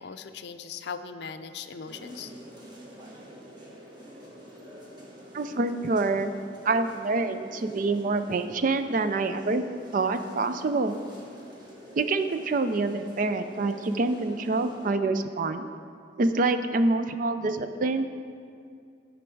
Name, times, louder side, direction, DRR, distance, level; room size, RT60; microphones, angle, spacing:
voice 1, 0.0-2.3, left 6 dB, 65° left, 9 dB, 0.4 m, -39 dB
sound 1, 1.9-14.9, equal, 25° right, 1.3 m, -47 dB
voice 2, 5.3-6.3 6.6-9.7 9.9-11.0 11.9-15.7 16.2-18.1, right 3 dB, 45° right, 9 dB, 0.4 m, -26 dB
13.0 x 5.2 x 4.6 m, 2.3 s
head